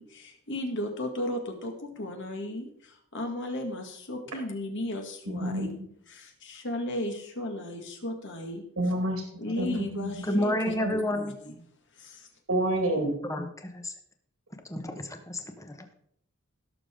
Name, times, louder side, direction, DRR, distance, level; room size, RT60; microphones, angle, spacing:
voice 1, 0.0-5.8 6.1-8.6 9.4-11.5 12.0-12.3, left 1 dB, 60° left, 3 dB, 2.0 m, -35 dB
voice 2, 5.3-5.9 8.8-9.2 9.6-10.1 10.8-10.9 12.5-13.2, right 1 dB, 85° right, 2 dB, 2.2 m, -28 dB
voice 3, 10.2-11.3 13.2-13.9 14.6-15.9, left 1 dB, 15° left, 6 dB, 1.1 m, -30 dB
17.0 x 6.9 x 3.8 m, 0.67 s
head